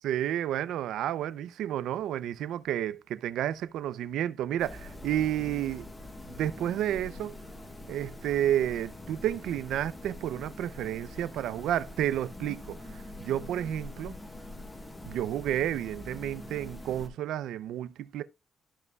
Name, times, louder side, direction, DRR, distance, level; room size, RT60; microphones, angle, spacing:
voice 1, 0.0-5.9 6.3-7.3 7.9-14.1 15.1-18.2, right 11 dB, 80° right, 0.5 m, -31 dB
sound 1, 4.6-17.1, left 1 dB, 20° left, 1.4 m, -44 dB
13.5 x 5.4 x 2.3 m
cardioid pair, 90°, 0 cm